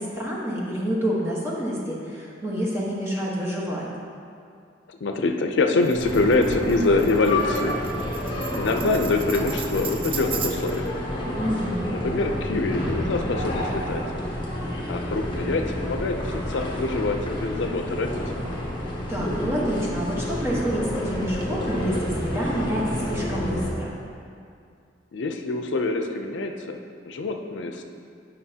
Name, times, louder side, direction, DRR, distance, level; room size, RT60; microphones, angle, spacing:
voice 1, 0.0-3.9 11.4-11.9 19.1-23.9, equal, 15° right, -6 dB, 1.1 m, -28 dB
voice 2, 4.9-7.8 8.5-10.9 11.9-14.0 14.9-18.1 25.1-27.8, left 3 dB, 85° left, 5 dB, 0.5 m, -25 dB
Tambourine, 5.8-10.9, right 7 dB, 30° right, 0.4 m, -36 dB
sound 1, 5.9-23.7, left 1 dB, 25° left, 1.0 m, -29 dB
9.4 x 5.4 x 2.8 m, 2.3 s
head